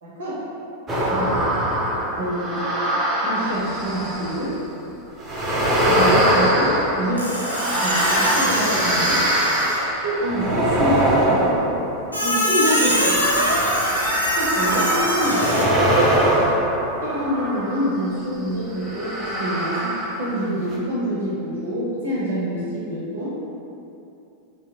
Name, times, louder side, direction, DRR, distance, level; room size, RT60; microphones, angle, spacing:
voice 1, 0.0-0.4 1.1-1.4 2.2-2.6 3.2-4.6 5.9-7.3 7.8-9.2 10.0-11.2 12.2-13.2 14.3-15.7 17.0-23.4, equal, 60° right, -8 dB, 0.7 m, -26 dB
sound 1, 0.9-4.6 5.2-18.0 18.8-20.4 20.7-20.8, right 1 dB, 20° right, 0.6 m, -22 dB
Squeak, 7.2-9.9 12.1-15.6, equal, 85° left, 0.4 m, -24 dB
3.1 x 2.9 x 2.3 m, 2.7 s
figure-of-eight pair, 90°, 0 cm